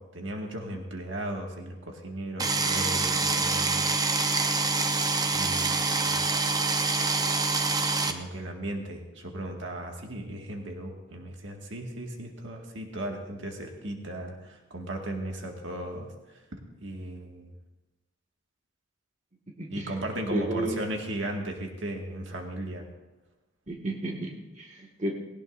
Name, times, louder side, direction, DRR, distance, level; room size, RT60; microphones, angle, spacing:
voice 1, 0.0-3.9 5.3-6.2 8.1-16.4 16.8-17.5 19.7-22.9, right 1 dB, 75° right, 1 dB, 1.9 m, -36 dB
sound 1, 2.4-8.1, right 3 dB, 20° right, 0.7 m, -26 dB
voice 2, 19.6-19.9 20.3-20.8 23.7-25.1, right 1 dB, 40° right, 0 dB, 1.8 m, -32 dB
19.5 x 17.5 x 2.6 m, 1.0 s
head